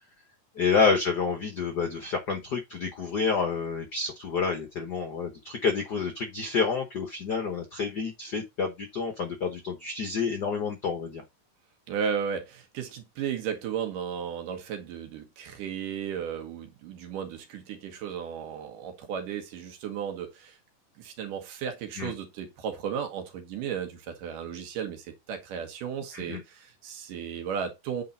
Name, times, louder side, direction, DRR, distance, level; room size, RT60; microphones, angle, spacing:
voice 1, 0.6-11.2 22.0-22.1 26.1-26.4, left 5 dB, 90° left, 0.9 m, -29 dB
voice 2, 11.9-20.6 21.0-28.0, right 7 dB, 85° right, 3.0 m, -34 dB
8.5 x 4.1 x 4.0 m
omnidirectional pair, 3.6 m